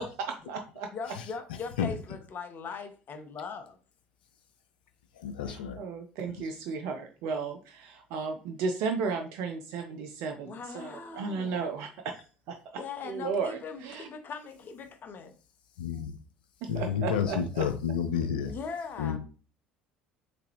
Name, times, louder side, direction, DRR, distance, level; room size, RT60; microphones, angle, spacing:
voice 1, 0.0-0.9 5.5-12.2 12.5-12.6 13.0-14.1 16.6-17.6, right 5 dB, 60° right, 0.4 m, -34 dB
voice 2, 0.9-3.8 10.5-11.6 12.8-15.3 18.5-19.2, left 5 dB, 40° left, 0.7 m, -40 dB
voice 3, 5.1-5.8 6.4-6.5 15.8-16.1 16.7-18.5 19.0-19.2, left 7 dB, 75° left, 0.5 m, -30 dB
3.3 x 3.0 x 3.3 m
figure-of-eight pair, 60°, 5 cm